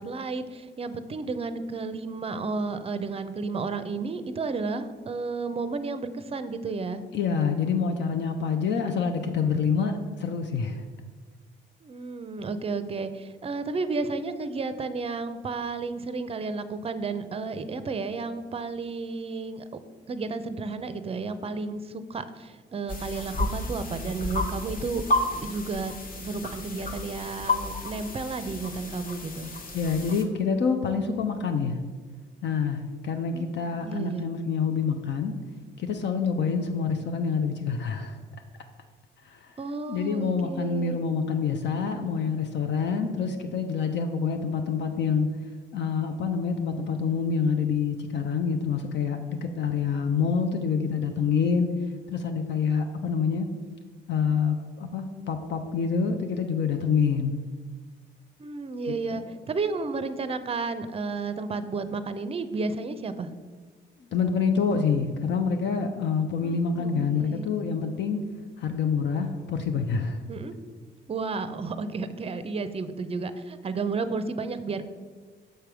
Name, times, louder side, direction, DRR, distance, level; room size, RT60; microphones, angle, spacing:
voice 1, 0.0-7.0 11.8-19.6 20.1-25.0 25.3-25.9 26.2-29.5 33.3-34.3 39.6-41.0 58.4-63.3 66.4-67.5 70.3-70.5 71.1-74.9, right 4 dB, 30° right, 11 dB, 0.5 m, -32 dB
voice 2, 7.1-10.8 29.7-31.8 32.4-35.4 35.8-38.2 39.2-39.5 39.9-45.3 45.7-51.7 52.1-53.5 54.1-57.3 58.9-59.3 64.1-68.2 68.6-70.2, left 6 dB, 65° left, 6 dB, 0.6 m, -27 dB
sound 1, 22.9-30.2, left 2 dB, 45° left, 0.9 m, -32 dB
6.6 x 3.4 x 5.9 m, 1.5 s
cardioid pair, 90°, 20 cm